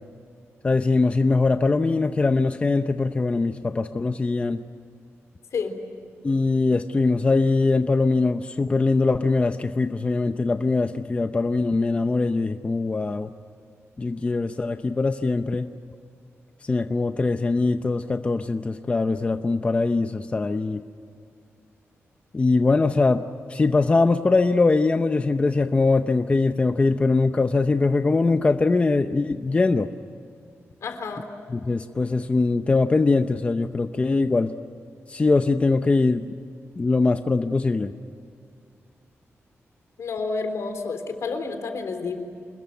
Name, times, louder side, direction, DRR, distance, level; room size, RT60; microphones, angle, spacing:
voice 1, 0.6-4.6 6.2-13.3 14.0-15.7 16.6-20.8 22.3-29.9 31.5-34.5 35.1-36.2 36.8-37.9, left 3 dB, 25° left, 8 dB, 0.7 m, -22 dB
voice 2, 30.8-31.2 40.0-42.1, left 4 dB, 75° left, 7 dB, 3.6 m, -29 dB
27.5 x 21.5 x 9.2 m, 2.4 s
wide cardioid pair, 155°, 5 cm